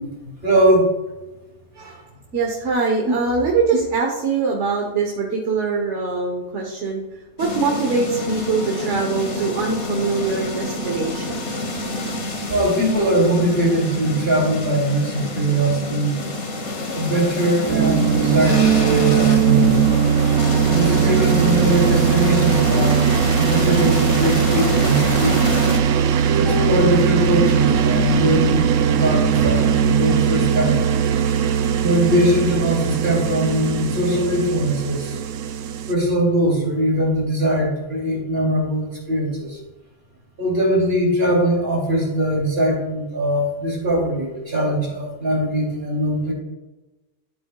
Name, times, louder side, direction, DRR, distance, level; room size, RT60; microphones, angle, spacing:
voice 1, 0.2-0.9 3.0-3.1 12.5-16.2 16.9-19.8 20.7-25.5 26.2-28.6 28.9-30.8 31.8-35.1 35.9-39.5 40.4-46.3, right 1 dB, 50° right, -2 dB, 3.2 m, -21 dB
voice 2, 2.3-7.0 7.4-11.4, right 4 dB, 70° right, 0 dB, 1.5 m, -23 dB
sound 1, 7.4-25.8, left 2 dB, 65° left, 1.7 m, -27 dB
sound 2, 17.7-35.9, right 7 dB, 85° right, 1.0 m, -19 dB
13.0 x 7.6 x 2.4 m, 1.1 s
omnidirectional pair, 1.3 m